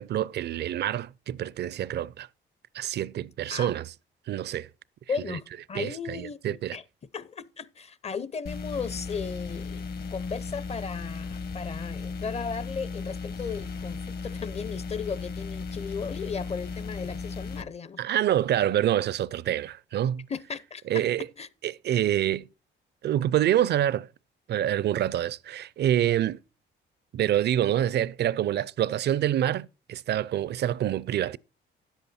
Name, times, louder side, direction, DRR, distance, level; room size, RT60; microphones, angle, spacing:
voice 1, 0.0-2.3 2.7-3.9 4.3-4.7 5.3-5.4 5.7-6.8 18.0-20.3 20.9-21.3 21.6-22.5 23.0-24.1 24.5-26.4 27.1-31.4, right 11 dB, 60° right, 0.4 m, -26 dB
voice 2, 5.1-6.8 7.1-9.8 10.1-18.0 20.3-21.1 21.4-21.5, left 5 dB, 30° left, 0.6 m, -36 dB
sound 1, 8.5-17.6, left 4 dB, 55° left, 1.2 m, -36 dB
10.0 x 8.1 x 4.2 m
cardioid pair, 90°, 20 cm